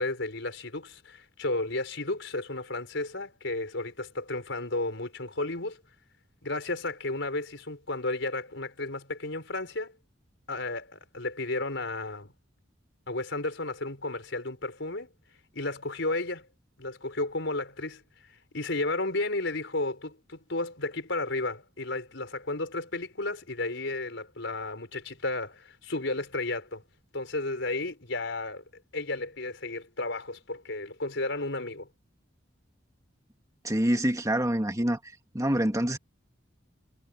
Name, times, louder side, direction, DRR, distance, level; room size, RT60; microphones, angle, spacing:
voice 1, 0.0-5.8 6.4-9.9 10.5-12.3 13.1-15.1 15.5-16.5 16.8-18.0 18.5-26.8 27.1-28.6 28.9-31.9, left 2 dB, 70° left, 5.4 m, -33 dB
voice 2, 33.6-35.0 35.3-36.0, right 1 dB, 15° right, 2.1 m, -26 dB
head